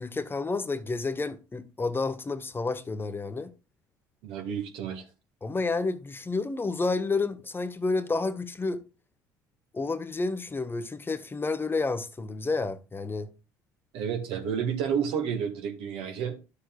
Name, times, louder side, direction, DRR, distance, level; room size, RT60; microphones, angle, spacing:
voice 1, 0.0-3.5 5.4-8.8 9.7-13.3, left 3 dB, 20° left, 0.9 m, -30 dB
voice 2, 4.2-5.0 13.9-16.3, right 7 dB, 65° right, 1.8 m, -30 dB
11.5 x 6.7 x 2.4 m
hypercardioid pair, 60°, 10 cm